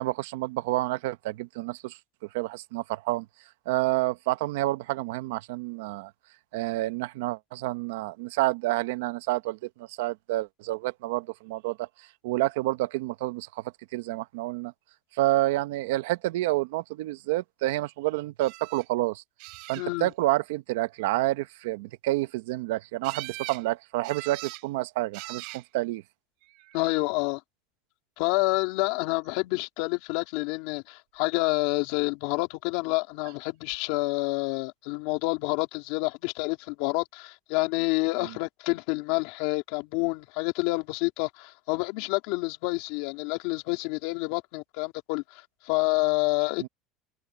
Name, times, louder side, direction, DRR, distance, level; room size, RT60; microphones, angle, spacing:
voice 1, 0.0-2.0 2.3-3.3 3.7-6.1 6.5-14.7 15.1-19.2 19.7-26.0 38.2-38.4 46.6-46.7, right 18 dB, 85° right, 0.9 m, -29 dB
sound 1, 18.4-18.8 19.4-20.1 23.0-23.6 24.0-24.6 25.1-25.6 26.5-27.0 33.2-33.4 33.7-33.8, right 29 dB, 70° right, 7.3 m, -41 dB
voice 2, 19.8-20.1 26.7-27.4 28.2-46.7, left 24 dB, 75° left, 3.1 m, -28 dB
supercardioid pair, 115°, 0 cm